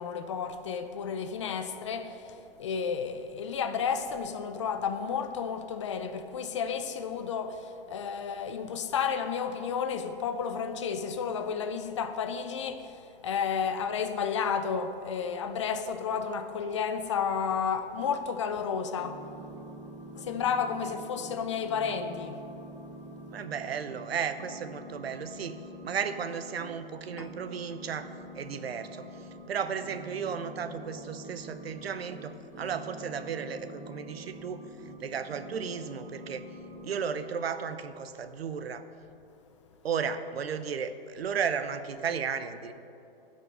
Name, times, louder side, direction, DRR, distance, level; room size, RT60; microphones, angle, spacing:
voice 1, 0.0-19.2 20.2-22.4 27.2-27.3, left 6 dB, 30° left, 0.4 m, -32 dB
sound 1, 19.0-24.1 24.3-26.8 27.0-29.4 29.8-35.0 35.2-37.0, right 1 dB, 10° right, 1.1 m, -46 dB
voice 2, 23.3-25.6 25.8-28.1 28.4-29.1 29.5-34.6 35.0-36.5 36.8-38.8 39.8-42.7, right 7 dB, 85° right, 0.8 m, -34 dB
15.0 x 5.4 x 5.5 m
hypercardioid pair, 155°, 30 cm